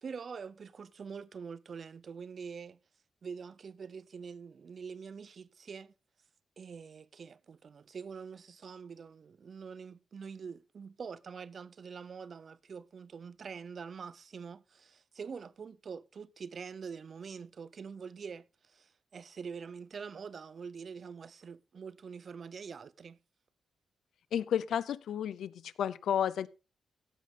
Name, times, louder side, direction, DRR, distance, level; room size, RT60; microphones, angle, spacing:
voice 1, 0.0-2.8 3.2-5.9 6.6-23.2, right 6 dB, 45° right, 0.6 m, -45 dB
voice 2, 24.3-26.5, left 9 dB, 85° left, 0.6 m, -32 dB
16.5 x 7.6 x 3.7 m
wide cardioid pair, 145°, 0 cm